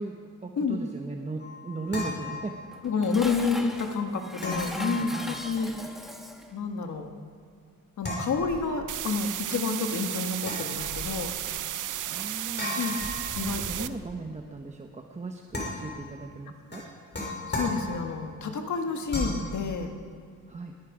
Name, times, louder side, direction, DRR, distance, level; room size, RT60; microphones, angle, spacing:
voice 1, 0.0-2.5 4.3-5.4 12.1-12.8 13.3-16.8 20.5-20.7, right 3 dB, 20° right, 2 dB, 0.9 m, -37 dB
sound 1, 1.4-3.0 4.4-5.8 8.0-9.1 10.4-11.5 12.6-14.0 15.5-16.2 16.7-18.3 19.1-19.5, left 2 dB, 30° left, 4.3 m, -36 dB
Dishes pots and pans, 2.7-6.5, equal, ahead, 1.3 m, -39 dB
voice 2, 2.8-5.7 6.5-7.1 8.0-11.3 12.8-13.0 13.3-13.9 17.5-20.0, left 5 dB, 60° left, 4 dB, 1.7 m, -29 dB
sound 2, 8.9-13.9, right 11 dB, 70° right, 0.6 m, -33 dB
21.0 x 13.5 x 5.0 m, 2.2 s
wide cardioid pair, 145°, 32 cm